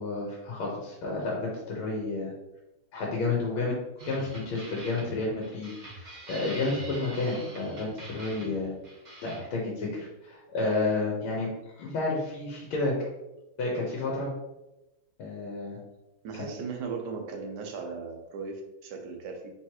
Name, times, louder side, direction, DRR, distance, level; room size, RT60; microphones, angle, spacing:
voice 1, 0.0-2.3 2.9-3.8 4.0-8.7 9.2-11.5 11.8-12.9 13.6-14.3 15.2-15.8 16.4-16.5, left 3 dB, 90° left, -3 dB, 1.8 m, -31 dB
sound 1, 4.0-9.4, right 2 dB, 30° right, 0.8 m, -44 dB
voice 2, 16.2-19.5, right 5 dB, 65° right, 3 dB, 1.2 m, -37 dB
4.6 x 4.0 x 2.9 m, 0.95 s
omnidirectional pair, 2.2 m